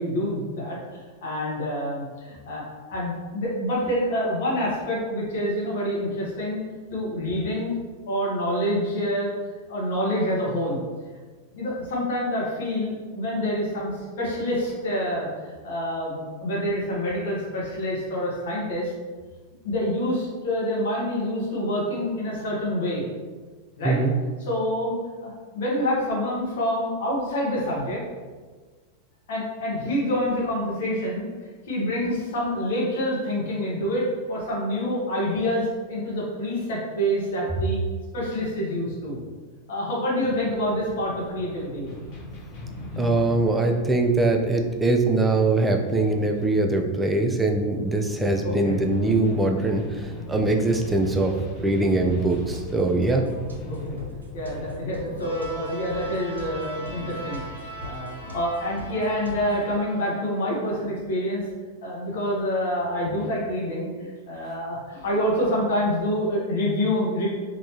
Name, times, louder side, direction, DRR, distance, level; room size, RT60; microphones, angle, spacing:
voice 1, 0.0-6.6 6.9-7.8 8.1-9.3 9.7-10.8 11.5-13.9 14.2-18.9 19.6-23.1 23.8-24.0 24.4-28.0 29.3-31.3 31.6-37.8 38.1-39.2 39.7-41.9 48.4-48.8 53.7-54.0 54.3-61.4 61.8-67.3, equal, 55° left, -5 dB, 1.1 m, -27 dB
sound 1, 40.2-57.7, left 2 dB, 40° left, 0.8 m, -39 dB
voice 2, 43.0-51.3 51.6-53.3, right 2 dB, 10° right, 3 dB, 0.4 m, -22 dB
sound 2, 52.1-59.7, equal, 70° right, 0.5 m, -41 dB
sound 3, 55.2-60.4, right 2 dB, 85° left, 0.7 m, -40 dB
3.2 x 2.7 x 2.9 m, 1.4 s
figure-of-eight pair, 90°, 0 cm